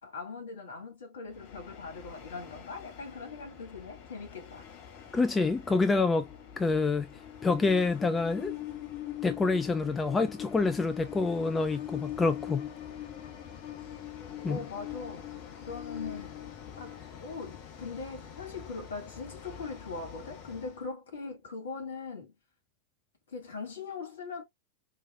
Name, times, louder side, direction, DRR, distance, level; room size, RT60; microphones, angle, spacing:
voice 1, 0.0-4.7 14.5-15.4 15.7-16.3 16.8-22.3 23.3-24.4, left 4 dB, 65° left, 2.0 m, -41 dB
Train, 1.3-20.8, left 10 dB, 45° left, 1.0 m, -43 dB
voice 2, 5.1-6.3 6.6-7.1 7.4-8.6 9.2-12.7 14.4-14.6, left 3 dB, 15° left, 0.4 m, -27 dB
4.7 x 3.1 x 2.5 m
figure-of-eight pair, 90°, 0 cm